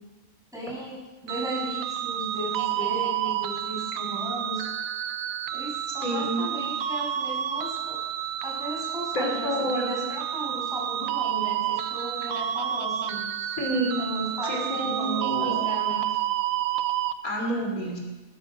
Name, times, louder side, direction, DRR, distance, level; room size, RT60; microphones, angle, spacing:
voice 1, 0.5-4.6 5.5-8.0 8.4-13.3 14.0-16.1, right 1 dB, ahead, -5 dB, 6.5 m, -35 dB
sound 1, 1.3-17.1, right 11 dB, 75° right, 1.1 m, -30 dB
voice 2, 6.0-6.4 9.1-10.0 13.6-14.0 14.4-15.7 17.2-18.0, right 1 dB, 90° left, 1 dB, 3.4 m, -28 dB
19.0 x 12.5 x 5.4 m, 1.2 s
omnidirectional pair, 1.5 m